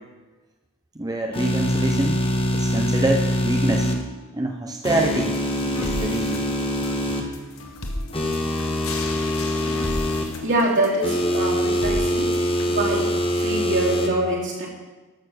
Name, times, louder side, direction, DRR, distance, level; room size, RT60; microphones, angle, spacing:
voice 1, 1.0-2.2 2.5-3.9 4.3-5.4 5.8-6.5, right 2 dB, 15° right, 2 dB, 0.7 m, -25 dB
sound 1, 1.3-3.9 4.8-7.2 8.1-10.2 11.0-14.1, equal, 25° left, 1.3 m, -23 dB
sound 2, 4.9-12.9, left 1 dB, 65° left, 1.5 m, -35 dB
voice 2, 10.4-12.4 12.7-14.7, right 1 dB, 55° right, -3 dB, 3.1 m, -24 dB
13.0 x 7.0 x 6.3 m, 1.2 s
head